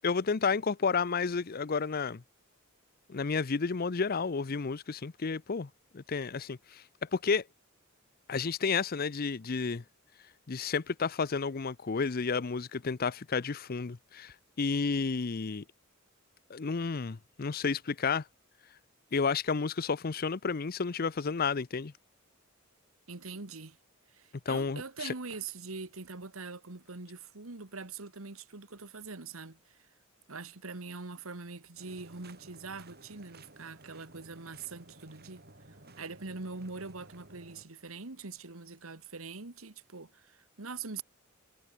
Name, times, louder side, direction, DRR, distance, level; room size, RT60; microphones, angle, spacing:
voice 1, 0.0-2.2 3.1-5.7 5.9-6.8 7.1-7.4 8.3-9.8 10.5-15.6 16.5-18.2 19.1-21.9 24.5-25.1, left 5 dB, 45° left, 0.6 m, -31 dB
voice 2, 23.1-23.8 24.1-29.9 30.3-35.4 35.7-41.0, right 4 dB, 80° right, 1.8 m, -43 dB
sound 1, 31.8-37.6, right 2 dB, 50° right, 8.0 m, -55 dB
head